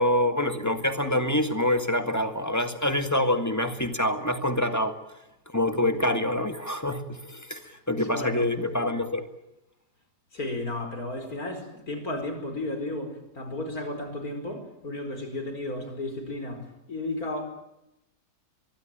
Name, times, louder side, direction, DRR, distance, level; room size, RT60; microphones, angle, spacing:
voice 1, 0.0-4.9 5.5-9.2, left 1 dB, 10° left, 8 dB, 2.0 m, -26 dB
voice 2, 8.1-8.5 10.3-17.6, left 2 dB, 60° left, 7 dB, 5.4 m, -34 dB
23.5 x 23.5 x 9.1 m, 0.87 s
omnidirectional pair, 1.8 m